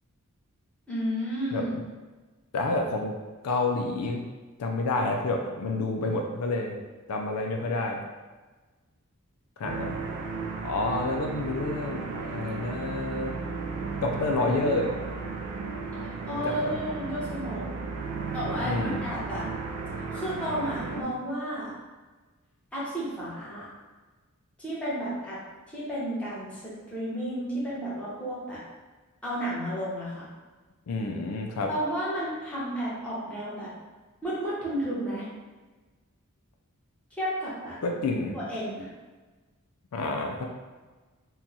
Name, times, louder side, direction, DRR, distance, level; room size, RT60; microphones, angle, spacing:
voice 1, 0.9-1.7 16.0-17.8 18.3-19.5 20.1-21.8 22.7-23.7 24.6-25.4 25.7-28.6 29.2-30.3 31.7-33.7 34.2-35.3 37.2-37.8 38.3-38.9, equal, 5° left, -9 dB, 1.0 m, -32 dB
voice 2, 2.5-3.1 3.4-4.3 4.6-6.7 7.1-8.0 9.6-10.0 10.6-13.4 14.0-15.0 16.3-16.7 18.6-19.1 30.9-31.7 37.8-38.4 39.9-40.5, left 2 dB, 80° left, 1 dB, 0.4 m, -29 dB
sound 1, 9.6-21.0, right 4 dB, 85° right, 0.4 m, -34 dB
2.8 x 2.3 x 3.9 m, 1.3 s
head